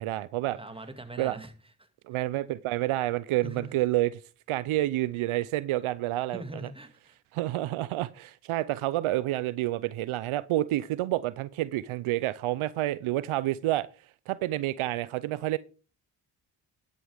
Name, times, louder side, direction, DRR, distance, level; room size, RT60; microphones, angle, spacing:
voice 1, 0.0-0.6 1.2-1.3 2.1-4.2 4.5-6.4 7.3-13.9 14.3-15.6, right 16 dB, 75° right, 0.7 m, -29 dB
voice 2, 0.6-1.5 1.8-1.9 3.4-3.9 6.3-7.2, right 2 dB, 10° right, 2.2 m, -42 dB
11.0 x 9.6 x 3.6 m
supercardioid pair, 50°, 50 cm